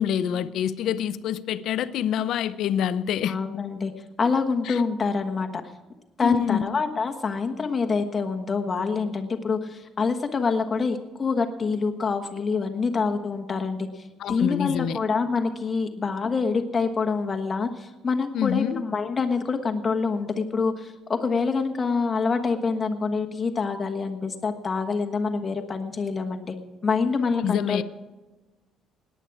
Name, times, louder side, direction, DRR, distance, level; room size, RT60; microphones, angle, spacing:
voice 1, 0.0-3.4 4.7-4.8 6.2-6.7 14.2-15.0 18.3-18.8 27.4-27.8, left 9 dB, 60° left, 0.6 m, -26 dB
voice 2, 3.3-3.9 4.2-5.5 6.2-26.6 26.8-27.8, left 4 dB, 25° left, 1.3 m, -26 dB
17.5 x 10.0 x 4.8 m
cardioid pair, 160°, 0 cm